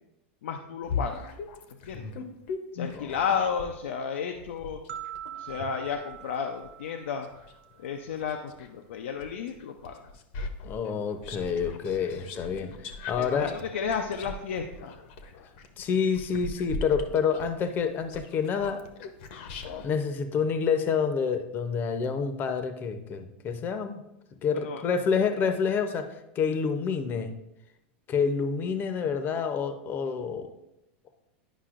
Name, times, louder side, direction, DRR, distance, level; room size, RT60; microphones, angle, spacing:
voice 1, 0.4-1.3 1.7-2.2 2.7-4.8 5.4-7.3 7.8-10.1 12.4-12.7 13.2-15.0 24.5-24.8, left 6 dB, 85° left, 4 dB, 0.5 m, -33 dB
sound 1, 0.8-3.8 4.4-8.7 9.2-19.9, left 4 dB, 65° left, 0.8 m, -39 dB
sound 2, 4.9-8.0, right 10 dB, 80° right, 0.5 m, -43 dB
voice 2, 10.6-13.5 15.8-18.8 19.8-24.0 24.4-27.4 28.1-30.5, left 6 dB, 30° left, 8 dB, 0.7 m, -28 dB
10.0 x 5.4 x 2.5 m, 0.87 s
supercardioid pair, 130°, 6 cm